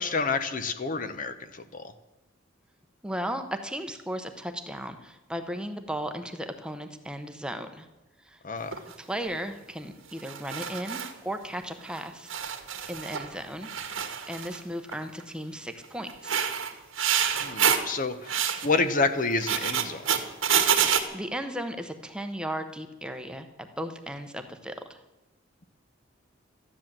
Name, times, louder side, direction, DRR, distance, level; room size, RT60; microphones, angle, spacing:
voice 1, 0.0-1.9 8.4-8.7 17.4-20.1, left 3 dB, 40° left, 10 dB, 0.9 m, -29 dB
voice 2, 3.0-7.9 8.2-8.4 9.0-12.3 12.9-14.0 14.3-16.4 21.1-25.0, equal, 5° right, 7 dB, 0.9 m, -36 dB
sound 1, 8.7-8.9 10.2-11.1 11.9-12.0 12.3-13.3 13.6-14.6 14.9-15.2 16.1-17.9 18.3-18.7 19.3-21.0, right 8 dB, 85° right, 1.8 m, -27 dB
13.5 x 10.5 x 7.5 m, 1.0 s
head